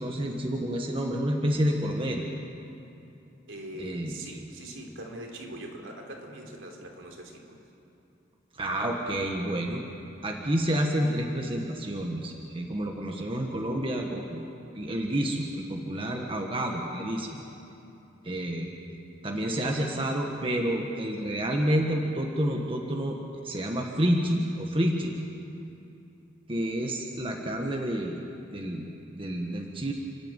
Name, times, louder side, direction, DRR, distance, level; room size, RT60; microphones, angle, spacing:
voice 1, 0.0-2.2 3.8-4.2 8.5-9.8 10.2-14.4 14.7-17.4 18.2-18.7 19.2-23.2 23.4-25.2 26.5-28.2 28.5-29.9, equal, 25° right, 1 dB, 1.5 m, -29 dB
voice 2, 3.5-7.6, right 1 dB, 85° right, 1 dB, 3.6 m, -42 dB
30.0 x 12.0 x 9.0 m, 2.8 s
head